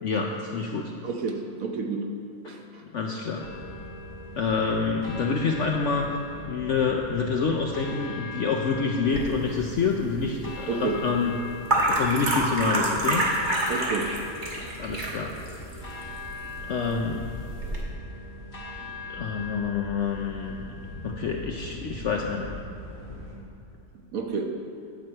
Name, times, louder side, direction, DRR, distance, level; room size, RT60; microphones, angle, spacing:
voice 1, 0.0-0.9 2.4-2.5 2.9-3.5 3.8-3.9 4.4-6.1 6.5-11.3 11.9-13.3 14.8-15.3 16.7-17.2 19.1-20.7 21.0-22.5, left 5 dB, 65° left, 1 dB, 0.7 m, -27 dB
voice 2, 1.0-2.1 2.4-2.8 10.7-11.0 13.7-14.1 24.1-24.5, right 4 dB, 60° right, 3 dB, 1.1 m, -30 dB
sound 1, 3.4-23.4, left 2 dB, 50° left, 2.7 m, -40 dB
sound 2, 9.1-17.8, right 1 dB, 30° right, 1.4 m, -29 dB
9.6 x 7.7 x 4.5 m, 2.8 s
omnidirectional pair, 1.8 m